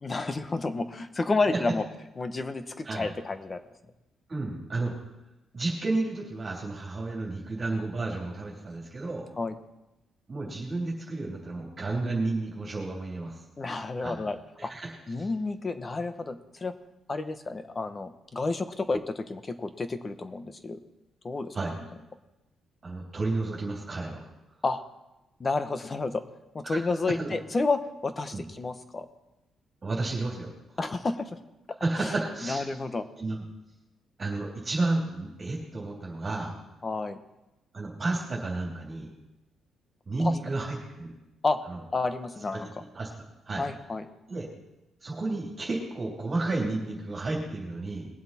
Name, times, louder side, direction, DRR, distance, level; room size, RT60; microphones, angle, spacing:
voice 1, 0.0-1.8 2.2-3.6 9.4-9.5 13.6-14.7 15.1-16.7 17.1-20.8 21.2-21.5 24.6-24.8 25.4-26.2 26.5-29.1 30.8-31.4 32.0-32.1 32.4-33.0 36.8-37.2 40.2-40.4 41.4-41.6 41.9-42.7 43.5-44.1, left 3 dB, 25° left, 10 dB, 0.9 m, -30 dB
voice 2, 4.3-5.0 5.5-9.3 10.3-13.4 14.0-14.1 14.6-14.9 15.2-15.3 21.5-21.7 22.8-24.2 26.6-26.8 27.2-27.4 28.3-28.4 29.8-30.5 31.8-32.7 33.2-33.4 34.2-36.5 37.7-39.1 40.1-41.1 41.7-41.8 42.5-42.6 42.9-43.1 43.4-43.6 44.3-44.5 45.0-48.1, right 2 dB, 30° right, -2 dB, 3.2 m, -31 dB
20.5 x 7.7 x 4.3 m, 0.96 s
cardioid pair, 125°, 0 cm